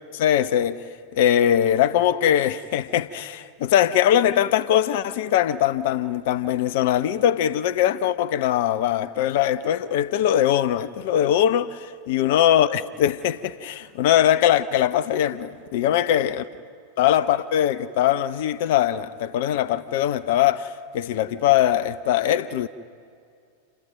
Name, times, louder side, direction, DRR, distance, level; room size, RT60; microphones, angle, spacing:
voice 1, 0.1-0.9 1.1-16.4 17.0-22.7, left 11 dB, 50° left, 0.8 m, -21 dB
28.0 x 26.5 x 6.0 m
figure-of-eight pair, 90°, 0 cm